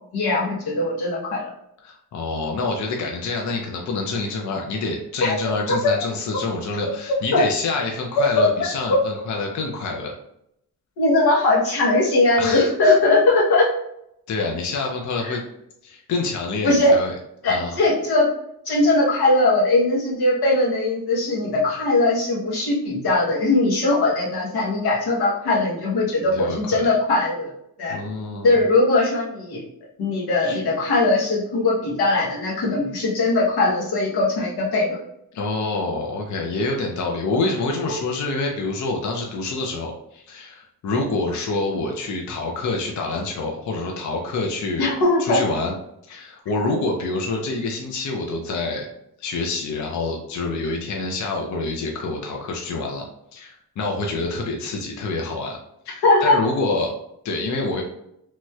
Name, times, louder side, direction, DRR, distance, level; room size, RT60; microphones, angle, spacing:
voice 1, 0.1-1.5 5.2-5.3 5.8-5.9 7.3-7.5 8.4-9.0 11.0-13.7 15.2-15.4 16.6-16.9 17.4-18.3 18.6-27.5 27.8-28.0 28.4-29.6 30.0-35.0 37.9-38.0 44.8-45.4 56.0-56.4, left 2 dB, 90° left, -4 dB, 1.1 m, -20 dB
voice 2, 1.8-10.1 12.4-12.9 14.3-15.4 15.8-17.1 17.5-17.8 26.3-26.9 27.9-28.5 30.4-30.6 35.3-44.9 45.2-45.7 46.1-48.9 49.2-53.1 53.3-55.6 55.9-56.9 57.2-57.8, left 3 dB, 50° left, 1 dB, 0.5 m, -27 dB
3.0 x 2.8 x 2.3 m, 0.77 s
wide cardioid pair, 135°, 37 cm